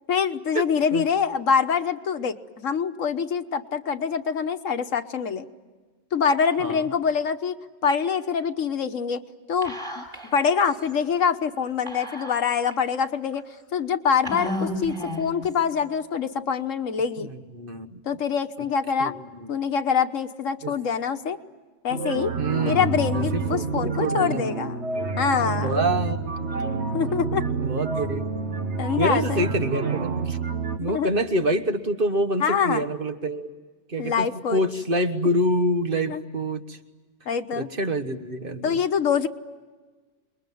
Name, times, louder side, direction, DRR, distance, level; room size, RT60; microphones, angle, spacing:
voice 1, 0.1-5.5 6.1-7.6 7.8-9.2 9.5-10.0 10.3-13.4 13.7-17.3 18.0-19.1 19.5-21.4 21.8-22.3 22.6-24.9 25.2-25.8 26.9-27.4 28.8-29.5 30.8-31.1 32.4-32.9 34.0-34.6 36.1-36.2 37.3-37.7 38.6-39.3, left 6 dB, 90° left, 8 dB, 1.5 m, -25 dB
Whispering, 9.6-10.3 10.6-10.7 11.9-12.7 13.3-13.4 14.2-15.4, left 1 dB, 25° right, 5.9 m, -32 dB
voice 2, 17.2-18.0 19.0-19.1 19.4-19.5 20.6-20.7 22.4-22.8 23.1-24.5 25.6-26.7 27.6-28.6 29.0-30.4 30.8-33.5 33.9-36.8 37.6-38.8, right 1 dB, 45° right, 7 dB, 1.5 m, -27 dB
sound 1, 21.9-30.8, right 4 dB, 65° right, 1.7 m, -28 dB
28.5 x 22.0 x 9.3 m, 1.3 s
omnidirectional pair, 1.3 m